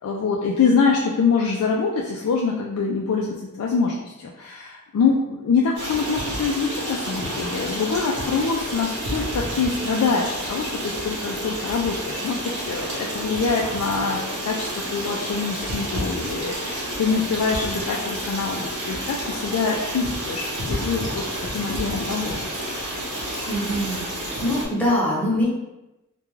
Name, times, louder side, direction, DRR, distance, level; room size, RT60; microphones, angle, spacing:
voice 1, 0.0-14.2 14.5-21.2 21.5-22.3, left 5 dB, 85° left, -2 dB, 0.3 m, -24 dB
Stream, 5.8-24.7, equal, 60° right, 0.8 m, -30 dB
voice 2, 23.5-25.5, equal, 10° left, -7 dB, 0.7 m, -24 dB
2.3 x 2.2 x 3.0 m, 0.97 s
head